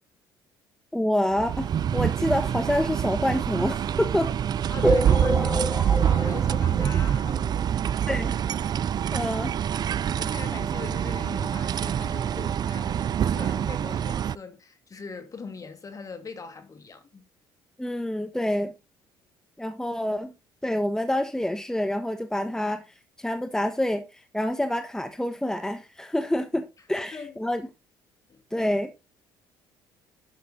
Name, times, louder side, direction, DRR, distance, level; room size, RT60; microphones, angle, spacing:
voice 1, 0.9-4.3 4.8-5.0 8.1-8.3 9.1-9.5 17.8-18.7 19.6-20.3 20.6-22.8 23.2-24.0 24.3-27.6 28.5-28.9, left 1 dB, 5° left, 1.4 m, -27 dB
sound 1, 1.3-14.4, right 9 dB, 45° right, 0.4 m, -26 dB
voice 2, 4.7-8.0 10.2-17.2 27.1-27.5 28.3-28.7, left 4 dB, 35° left, 2.3 m, -41 dB
sound 2, 4.8-7.7 8.2-8.3 8.4-8.6 8.9-9.0 9.9-10.0 10.4-10.5, right 1 dB, 10° right, 2.6 m, -29 dB
11.5 x 6.0 x 3.9 m
supercardioid pair, 75°, 10 cm